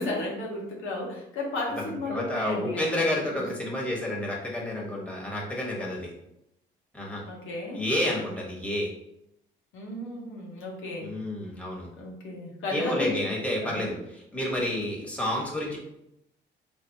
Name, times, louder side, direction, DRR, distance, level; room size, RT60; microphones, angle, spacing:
voice 1, 0.0-3.1 3.3-3.7 7.2-7.8 9.7-11.1 12.0-13.2 13.6-14.0, left 2 dB, 85° left, -1 dB, 1.0 m, -34 dB
voice 2, 1.7-6.1 6.9-7.2 7.7-8.9 11.0-11.9 12.7-15.8, left 1 dB, 5° left, -3 dB, 1.2 m, -30 dB
3.6 x 3.4 x 2.8 m, 0.81 s
cardioid pair, 90°, 20 cm